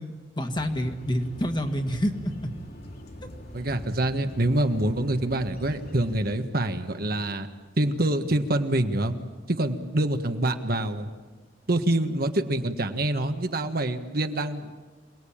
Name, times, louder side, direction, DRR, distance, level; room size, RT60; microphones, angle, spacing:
voice 1, 0.0-2.5 3.2-3.3, equal, 25° left, 5 dB, 1.9 m, -28 dB
sound 1, 0.5-6.4, equal, 60° left, 3.7 m, -43 dB
voice 2, 3.5-7.5 7.8-9.1 9.5-11.1 11.7-14.8, right 1 dB, 60° right, 7 dB, 1.5 m, -26 dB
28.0 x 19.0 x 8.8 m, 1.4 s
head